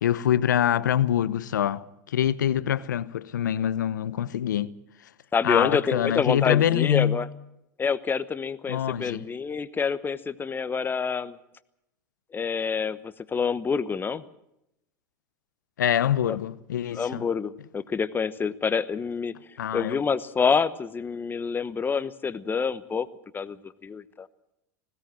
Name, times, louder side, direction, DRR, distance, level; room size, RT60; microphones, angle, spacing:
voice 1, 0.0-4.7 5.4-7.2 8.7-9.2 15.8-17.3 19.6-20.0, left 10 dB, 90° left, 0.9 m, -25 dB
voice 2, 5.3-7.3 7.8-11.4 12.3-14.2 16.3-16.4 16.9-19.3 19.7-23.1 23.3-24.3, left 5 dB, 20° left, 1.1 m, -27 dB
20.5 x 17.0 x 7.7 m
hypercardioid pair, 100°, 10 cm